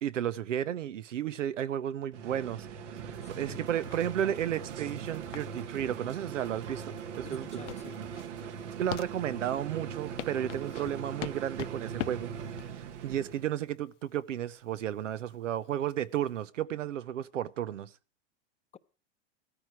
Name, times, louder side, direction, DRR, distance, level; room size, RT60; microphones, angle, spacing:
voice 1, 0.0-2.7 3.0-7.6 8.8-12.3 13.0-17.9, right 10 dB, 90° right, 0.9 m, -33 dB
sound 1, 2.1-13.5, right 7 dB, 75° right, 1.9 m, -41 dB
sound 2, 3.0-8.4, right 11 dB, 30° right, 0.9 m, -55 dB
voice 2, 3.2-3.7 7.2-8.1, left 7 dB, 20° left, 0.8 m, -49 dB
sound 3, 3.7-16.4, left 14 dB, 80° left, 0.6 m, -44 dB
15.5 x 14.0 x 4.7 m
hypercardioid pair, 115°, 36 cm